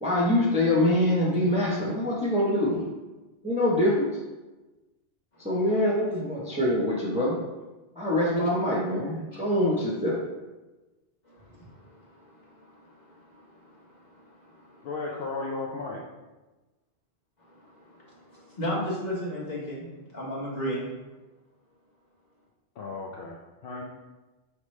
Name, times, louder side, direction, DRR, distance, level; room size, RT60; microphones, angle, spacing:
voice 1, 0.0-2.8 3.4-4.1 5.4-7.4 8.0-10.1, left 1 dB, 5° right, -5 dB, 0.6 m, -24 dB
voice 2, 11.2-14.9 17.4-20.9, equal, 40° left, -6 dB, 1.3 m, -36 dB
voice 3, 14.8-16.0 22.8-23.8, left 3 dB, 60° left, -3 dB, 0.7 m, -35 dB
5.0 x 3.0 x 3.1 m, 1.1 s
omnidirectional pair, 1.2 m